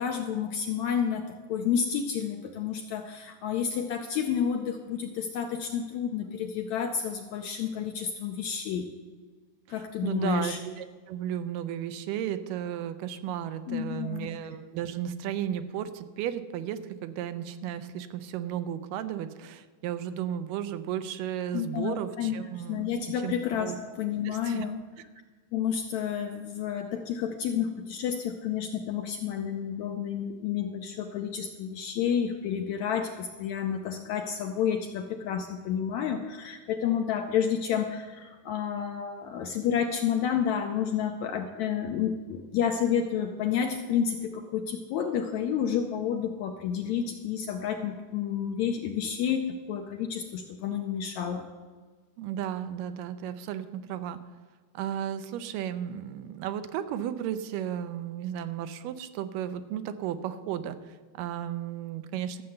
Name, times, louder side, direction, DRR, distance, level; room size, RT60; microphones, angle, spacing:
voice 1, 0.0-8.9 9.7-10.6 13.7-14.3 21.5-22.4 22.7-24.8 25.5-51.5, left 8 dB, 80° left, 5 dB, 1.7 m, -30 dB
voice 2, 9.7-22.8 23.2-23.8 24.2-24.7 52.2-54.2 54.7-62.4, right 10 dB, 80° right, 11 dB, 2.2 m, -34 dB
13.5 x 6.7 x 7.8 m, 1.5 s
omnidirectional pair, 3.9 m